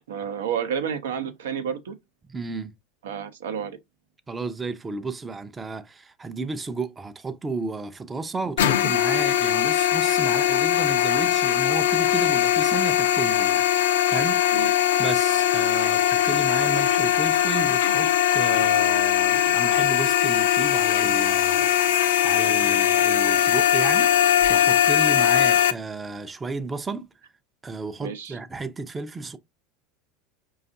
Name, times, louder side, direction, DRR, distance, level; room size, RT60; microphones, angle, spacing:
voice 1, 0.0-2.0 3.0-3.8 14.5-14.7 28.0-28.4, right 7 dB, 90° right, 0.6 m, -30 dB
voice 2, 2.3-2.7 4.3-14.4 15.0-24.1 24.5-27.1 27.6-29.4, right 3 dB, 20° right, 0.4 m, -32 dB
sound 1, 8.6-25.7, left 11 dB, 85° left, 0.4 m, -20 dB
5.0 x 2.3 x 2.6 m
supercardioid pair, 105°, 0 cm